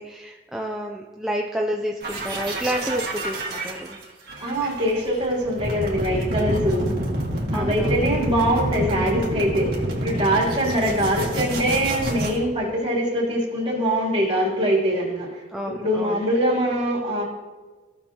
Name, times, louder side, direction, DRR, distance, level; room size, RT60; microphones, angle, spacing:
voice 1, 0.0-4.0 7.5-8.1 10.5-10.8 15.5-16.2, equal, 5° right, 0 dB, 0.5 m, -30 dB
sound 1, 2.0-12.4, right 1 dB, 55° right, 1.9 m, -28 dB
voice 2, 4.4-6.9 7.5-15.4 15.8-17.2, equal, 30° right, -6 dB, 3.1 m, -23 dB
16.0 x 6.2 x 2.9 m, 1.3 s
head